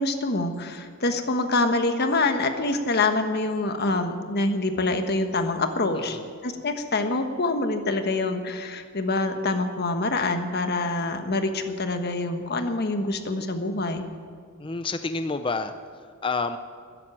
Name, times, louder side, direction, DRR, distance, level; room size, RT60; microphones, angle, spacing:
voice 1, 0.0-14.0, left 2 dB, 45° left, 7 dB, 1.3 m, -26 dB
voice 2, 5.9-6.3 14.6-16.6, left 3 dB, 25° left, 9 dB, 0.5 m, -29 dB
13.5 x 10.5 x 9.1 m, 2.1 s
head